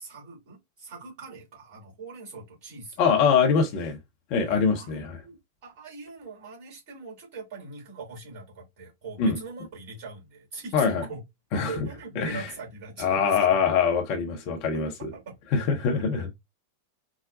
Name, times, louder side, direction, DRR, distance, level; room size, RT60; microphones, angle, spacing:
voice 1, 0.0-3.0 4.5-5.4 5.6-11.2 11.5-13.6 14.7-14.8 15.1-15.7 15.9-16.2, right 4 dB, 50° right, 2.6 m, -42 dB
voice 2, 3.0-4.0 4.3-5.2 9.2-9.4 10.7-11.0 11.5-11.7 12.2-12.4 13.0-15.1 15.5-16.3, left 6 dB, 45° left, 0.9 m, -23 dB
4.8 x 2.2 x 2.6 m
figure-of-eight pair, 90°, 0 cm